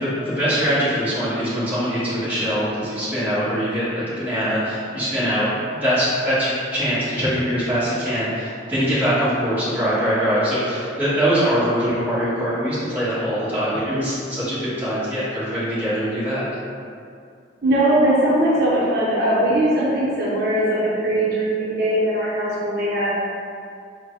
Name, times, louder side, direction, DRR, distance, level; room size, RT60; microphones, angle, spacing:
voice 1, 0.0-5.5 5.7-16.5, equal, 10° right, -13 dB, 1.5 m, -22 dB
voice 2, 17.6-23.2, right 1 dB, 55° right, -8 dB, 0.8 m, -20 dB
4.4 x 2.2 x 4.6 m, 2.4 s
head